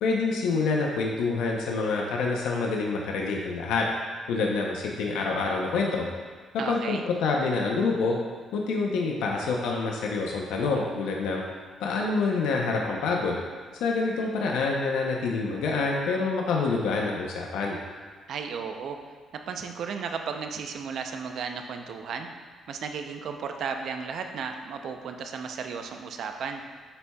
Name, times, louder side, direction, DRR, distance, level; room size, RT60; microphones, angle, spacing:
voice 1, 0.0-3.9 4.3-6.1 6.7-8.2 8.5-11.4 11.8-13.4 13.8-17.8, left 4 dB, 90° left, -1 dB, 0.7 m, -27 dB
voice 2, 6.6-7.0 18.3-19.0 19.5-22.3 22.7-26.6, right 6 dB, 70° right, 5 dB, 0.5 m, -34 dB
11.0 x 4.2 x 2.3 m, 1.5 s
cardioid pair, 90°, 0 cm